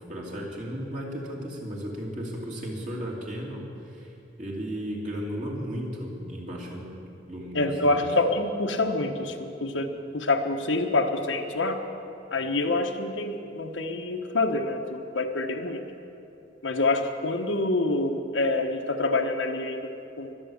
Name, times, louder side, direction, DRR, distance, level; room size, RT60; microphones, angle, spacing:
voice 1, 0.0-4.1 4.4-6.9 7.3-8.1, equal, 40° right, -2 dB, 2.8 m, -35 dB
voice 2, 7.5-11.8 12.3-15.8 16.6-20.3, left 2 dB, 80° left, 4 dB, 1.3 m, -26 dB
23.0 x 8.6 x 7.2 m, 2.8 s
head